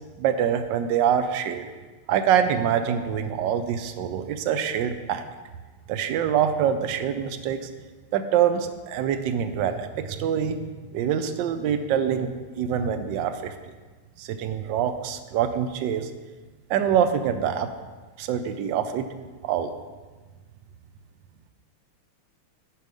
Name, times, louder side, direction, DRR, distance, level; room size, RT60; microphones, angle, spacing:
voice 1, 0.2-1.7 2.1-5.2 5.9-7.7 8.1-10.6 10.9-13.5 14.2-16.1 16.7-17.7 18.2-19.1 19.4-19.7, right 8 dB, 75° right, 9 dB, 1.1 m, -25 dB
11.5 x 4.7 x 5.2 m, 1.4 s
omnidirectional pair, 2.4 m